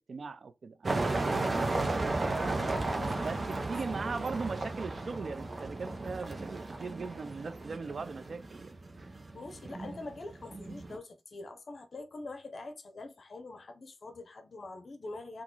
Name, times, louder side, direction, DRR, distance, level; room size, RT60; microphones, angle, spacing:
voice 1, 0.0-2.2 3.2-8.8, right 4 dB, 75° right, 0.4 m, -39 dB
sound 1, 0.8-11.0, right 2 dB, 50° right, 0.8 m, -34 dB
voice 2, 2.4-3.6 9.3-15.4, left 2 dB, 65° left, 0.7 m, -44 dB
3.0 x 2.4 x 3.7 m
cardioid pair, 55°, 0 cm